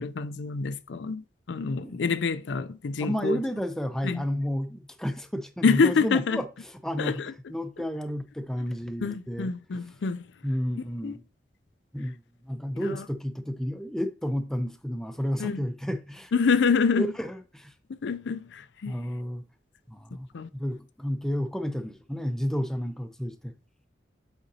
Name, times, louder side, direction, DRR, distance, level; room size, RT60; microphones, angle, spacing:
voice 1, 0.0-3.4 4.0-4.2 5.6-6.4 7.0-7.3 9.0-10.2 11.0-11.2 12.8-13.0 15.4-15.6 16.3-17.1 17.9-18.9 20.3-20.5, left 5 dB, 80° left, 0.4 m, -26 dB
voice 2, 3.0-7.2 7.5-9.5 10.4-11.2 11.9-12.2 12.5-16.3 17.0-17.7 18.9-19.4 19.9-20.3 20.5-23.5, equal, 5° left, 0.6 m, -31 dB
7.9 x 5.1 x 2.8 m
head